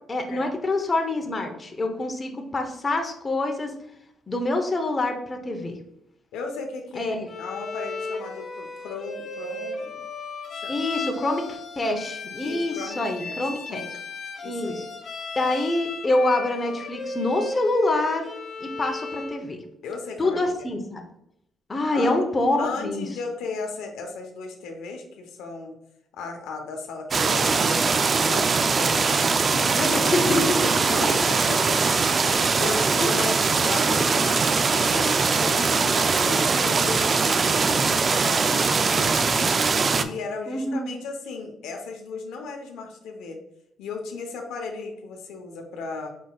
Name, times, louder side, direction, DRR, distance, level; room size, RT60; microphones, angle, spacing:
voice 1, 0.1-3.7 4.3-5.8 6.9-7.3 10.7-13.8 14.4-14.8 15.4-18.3 18.6-19.6 20.2-21.0 21.7-23.1 29.5-31.1 33.0-33.1 40.5-40.9, left 2 dB, 30° left, 4 dB, 0.7 m, -26 dB
voice 2, 6.3-10.0 10.5-10.8 12.4-13.3 13.7-13.9 14.4-14.9 19.8-20.7 21.9-22.2 22.6-25.7 26.1-30.2 30.9-39.3 40.0-43.4 43.8-46.1, left 4 dB, 90° left, 3 dB, 0.7 m, -36 dB
Bowed string instrument, 7.3-19.4, left 3 dB, 55° left, 1.4 m, -35 dB
sound 1, 27.1-40.0, right 4 dB, 40° right, 0.3 m, -21 dB
4.9 x 4.0 x 2.3 m, 0.78 s
cardioid pair, 90°, 0 cm